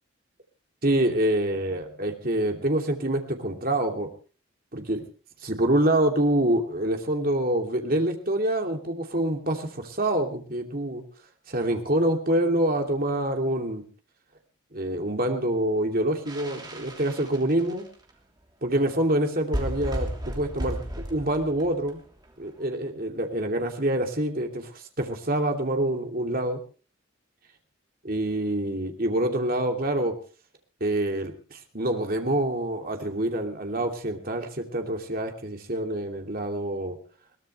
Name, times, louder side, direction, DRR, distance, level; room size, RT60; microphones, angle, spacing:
voice 1, 0.8-4.1 4.7-5.0 5.4-11.0 11.5-13.8 14.7-17.9 18.6-20.8 21.1-22.0 22.4-26.6 28.0-30.1 30.8-37.0, right 1 dB, 45° right, 3 dB, 2.7 m, -26 dB
sound 1, 16.3-18.1 18.8-18.9 19.1-19.2 19.4-22.5, equal, 20° right, 3.1 m, -34 dB
22.0 x 17.5 x 3.2 m, 0.37 s
head